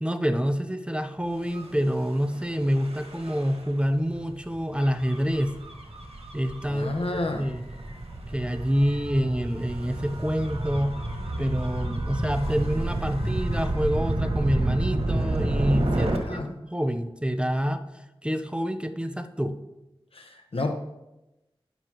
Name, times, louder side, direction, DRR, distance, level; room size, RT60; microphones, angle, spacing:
voice 1, 0.0-5.5 6.3-6.9 7.4-7.6 8.3-11.0 11.4-19.6, equal, 10° right, 8 dB, 0.8 m, -27 dB
Gull seagull / Waves surf / Siren, 1.4-16.2, right 1 dB, 75° right, 1.9 m, -30 dB
voice 2, 6.7-7.5 16.1-16.5 20.1-20.7, left 2 dB, 70° left, 4 dB, 1.2 m, -30 dB
19.5 x 6.8 x 3.1 m, 0.97 s
wide cardioid pair, 60°, 10 cm